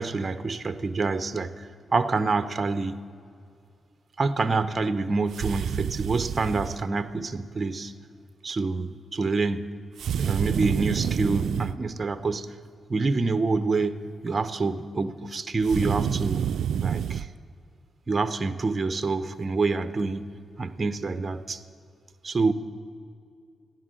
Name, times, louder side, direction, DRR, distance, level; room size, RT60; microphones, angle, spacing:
voice 1, 0.0-3.0 4.2-7.9 8.4-9.6 10.2-12.6 12.9-16.4 16.8-17.3 18.1-20.2 20.6-21.6 22.2-22.5, right 3 dB, 35° right, 12 dB, 0.8 m, -27 dB
sound 1, 5.3-6.8 10.0-11.8 15.6-17.3, right 8 dB, 80° right, 0.3 m, -28 dB
15.5 x 10.5 x 7.6 m, 2.4 s
cardioid pair, 75°, 0 cm